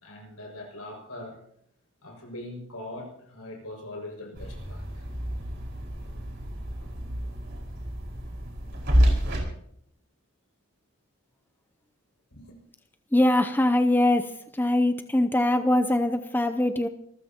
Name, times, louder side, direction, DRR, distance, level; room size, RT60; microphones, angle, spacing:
voice 1, 0.0-1.4 2.0-5.0 6.8-7.0 12.3-12.6, left 1 dB, 85° left, 2 dB, 6.1 m, -41 dB
sound 1, 4.4-9.4, equal, 50° right, 4.9 m, -28 dB
voice 2, 13.1-14.2 14.6-16.9, left 1 dB, 10° left, 7 dB, 0.6 m, -22 dB
26.0 x 14.5 x 2.9 m, 0.68 s
head